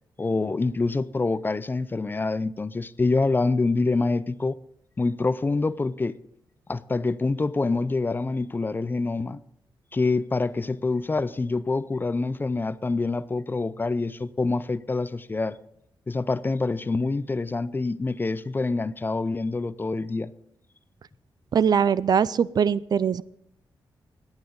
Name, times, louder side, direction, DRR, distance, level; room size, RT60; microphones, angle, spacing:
voice 1, 0.2-4.6 5.0-6.2 6.7-9.4 9.9-15.6 16.1-20.3, left 3 dB, 25° left, 0.5 m, -26 dB
voice 2, 21.5-23.2, right 7 dB, 55° right, 0.4 m, -21 dB
20.0 x 8.9 x 3.9 m
cardioid pair, 90°, 8 cm